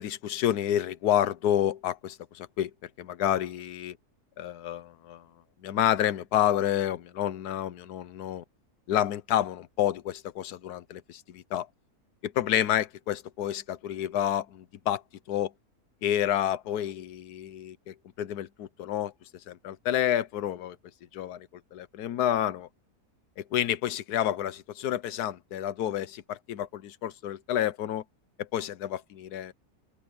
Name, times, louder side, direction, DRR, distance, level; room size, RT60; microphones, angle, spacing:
voice 1, 0.0-2.7 3.0-4.0 4.4-5.3 5.6-8.4 8.9-11.7 12.2-15.0 15.3-15.5 16.0-19.1 19.5-20.8 21.1-22.7 23.4-28.0 28.4-29.5, left 11 dB, 90° left, 1.3 m, -29 dB
open air
omnidirectional pair, 1.6 m